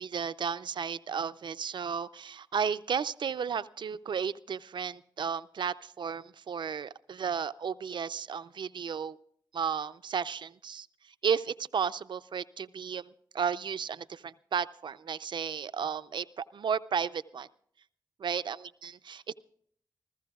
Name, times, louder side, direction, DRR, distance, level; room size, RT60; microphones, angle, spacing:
voice 1, 0.0-9.2 9.5-10.9 11.2-17.5 18.2-19.3, right 7 dB, 70° right, 13 dB, 0.5 m, -33 dB
28.5 x 14.5 x 2.4 m, 0.63 s
cardioid pair, 40°, 8 cm